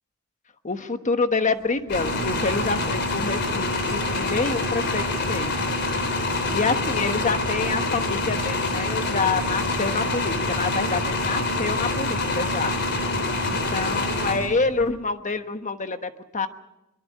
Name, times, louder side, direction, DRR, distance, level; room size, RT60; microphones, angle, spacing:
voice 1, 0.6-5.5 6.5-12.7 13.4-16.5, left 4 dB, 35° left, 9 dB, 1.2 m, -27 dB
sound 1, 1.9-14.9, left 2 dB, 55° left, 3.5 m, -26 dB
23.5 x 22.5 x 6.4 m, 0.92 s
head